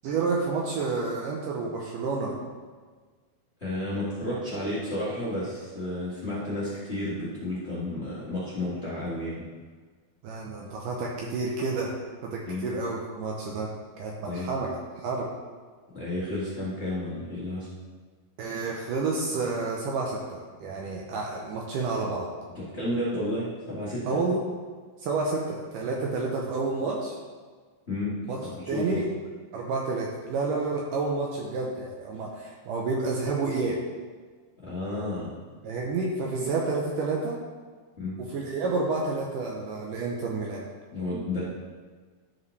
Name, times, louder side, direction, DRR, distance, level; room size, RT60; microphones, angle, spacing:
voice 1, 0.0-2.3 10.2-11.9 12.2-13.7 14.0-15.3 18.4-22.3 24.1-24.4 25.0-27.2 28.3-28.4 28.7-29.0 29.5-33.8 35.6-37.4 38.3-40.7, right 3 dB, 85° right, -2 dB, 1.9 m, -29 dB
voice 2, 3.6-9.4 12.4-12.7 14.2-14.5 15.9-17.7 22.7-24.0 27.9-28.1 28.5-29.1 34.6-35.3 38.0-38.2 40.9-41.4, left 1 dB, 50° left, -9 dB, 0.7 m, -31 dB
12.5 x 5.3 x 3.2 m, 1.5 s
omnidirectional pair, 4.8 m